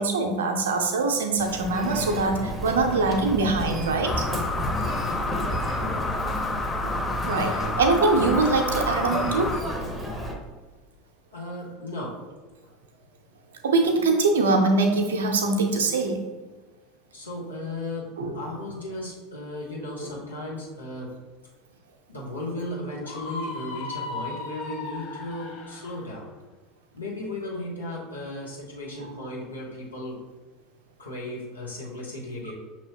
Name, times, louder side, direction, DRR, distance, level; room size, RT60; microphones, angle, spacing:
voice 1, 0.0-4.6 7.2-9.6 13.6-16.2 18.2-18.4, right 3 dB, 70° right, 4 dB, 0.6 m, -23 dB
Human voice, 1.4-10.3, equal, 10° right, 0.8 m, -32 dB
sound 1, 4.0-9.6, left 3 dB, 15° left, 0.4 m, -30 dB
voice 2, 6.1-6.4 7.2-7.8 11.3-12.3 12.6-12.7 17.1-21.2 22.1-26.3 26.9-30.2 31.0-32.5, left 1 dB, 80° left, -3 dB, 1.1 m, -35 dB
Screaming, 23.0-26.0, left 3 dB, 55° left, 0.7 m, -36 dB
6.0 x 2.9 x 2.8 m, 1.3 s
figure-of-eight pair, 75°, 0 cm